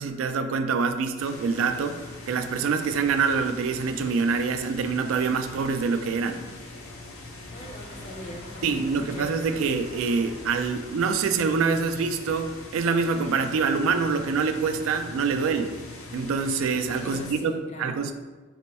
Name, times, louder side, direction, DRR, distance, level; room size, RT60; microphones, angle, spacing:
voice 1, 0.0-6.4 8.6-15.8 16.1-17.5 17.8-18.1, right 5 dB, 80° right, 8 dB, 0.3 m, -25 dB
sound 1, 1.2-17.3, left 2 dB, 85° left, 0.6 m, -42 dB
voice 2, 7.5-8.8 9.2-9.5 17.0-18.0, left 1 dB, 30° left, 2 dB, 0.4 m, -40 dB
sound 2, 7.5-11.8, right 1 dB, 35° right, 0.6 m, -48 dB
4.1 x 2.2 x 4.1 m, 1.3 s
head